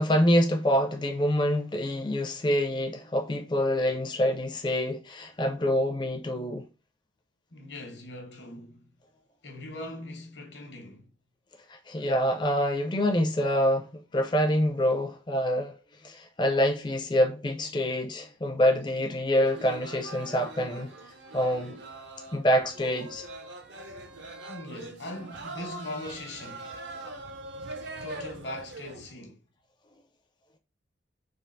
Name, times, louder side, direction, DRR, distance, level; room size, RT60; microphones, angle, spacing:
voice 1, 0.0-6.7 11.7-15.8 16.0-20.9 21.3-21.8 22.3-23.3, equal, 25° left, 0.4 m, -26 dB
voice 2, 7.5-8.9 9.4-11.1 24.5-26.8 28.0-29.4, left 1 dB, 65° left, 0.9 m, -41 dB
sound 1, 19.4-29.1, right 2 dB, 70° right, 0.5 m, -42 dB
3.5 x 2.4 x 2.5 m
head